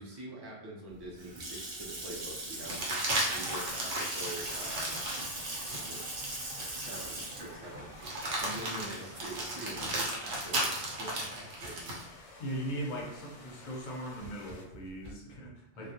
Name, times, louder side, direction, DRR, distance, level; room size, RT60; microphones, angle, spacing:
voice 1, 0.0-3.0 3.3-5.0 5.6-6.0 6.7-12.0 15.7-15.9, right 1 dB, 30° right, -4 dB, 0.5 m, -45 dB
Water tap faucet / Sink (filling or washing) / Splash splatter, 0.9-9.8, right 2 dB, 55° right, 0.8 m, -40 dB
sound 1, 1.0-1.1 2.6-6.1 6.6-6.7 8.0-12.1 14.2-15.1, right 1 dB, 80° right, 1.0 m, -35 dB
sound 2, 4.4-14.6, left 2 dB, 90° left, 0.9 m, -53 dB
voice 2, 12.4-15.9, right 1 dB, 50° left, -2 dB, 0.7 m, -39 dB
2.3 x 2.1 x 2.8 m, 0.80 s
omnidirectional pair, 1.2 m